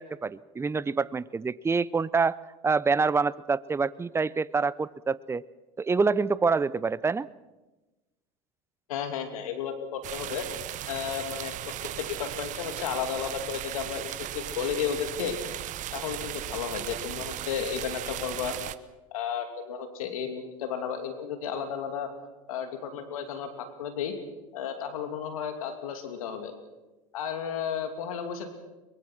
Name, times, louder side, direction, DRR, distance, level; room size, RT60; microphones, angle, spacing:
voice 1, 0.0-2.4 2.6-5.4 5.8-7.3, right 4 dB, 15° right, 20 dB, 0.6 m, -26 dB
voice 2, 8.9-10.5 10.9-15.4 15.9-18.5 19.1-22.1 22.5-24.1 24.5-26.5 27.1-28.5, left 8 dB, 80° left, 7 dB, 2.7 m, -33 dB
sound 1, 10.0-18.7, right 13 dB, 45° right, 0.9 m, -37 dB
23.0 x 22.0 x 6.1 m, 1.1 s
hypercardioid pair, 85°, 18 cm